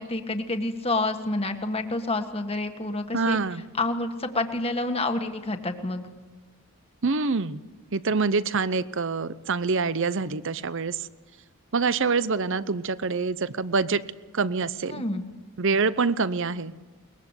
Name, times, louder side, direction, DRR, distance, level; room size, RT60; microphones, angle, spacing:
voice 1, 0.0-3.4 3.8-6.0 14.9-15.3, left 2 dB, 25° left, 6 dB, 1.6 m, -28 dB
voice 2, 3.1-3.6 7.0-7.6 7.9-11.1 11.7-14.0 14.3-15.0 15.6-16.7, right 4 dB, 55° right, 16 dB, 0.7 m, -25 dB
22.5 x 20.5 x 8.2 m, 1.3 s
head